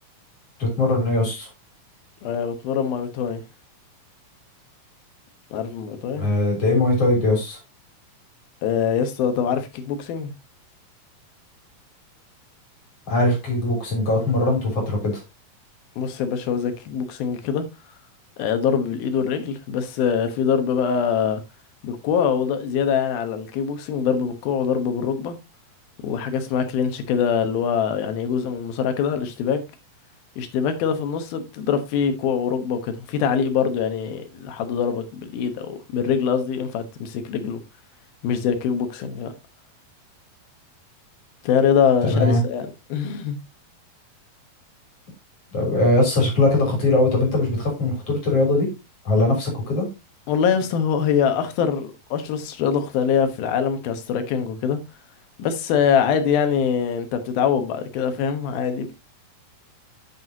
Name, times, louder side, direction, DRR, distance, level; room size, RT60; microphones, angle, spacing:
voice 1, 0.6-1.5 6.2-7.6 13.1-15.2 42.0-42.4 45.5-48.7 49.0-49.9, left 2 dB, 40° left, 4.4 m, -20 dB
voice 2, 2.2-3.4 5.5-6.3 8.6-10.3 16.0-17.6 18.4-21.4 21.8-25.4 26.0-29.6 30.4-37.6 38.2-39.3 41.4-43.4 50.3-54.8 55.4-58.9, left 7 dB, 90° left, 3.0 m, -23 dB
8.3 x 7.7 x 2.8 m
omnidirectional pair, 4.1 m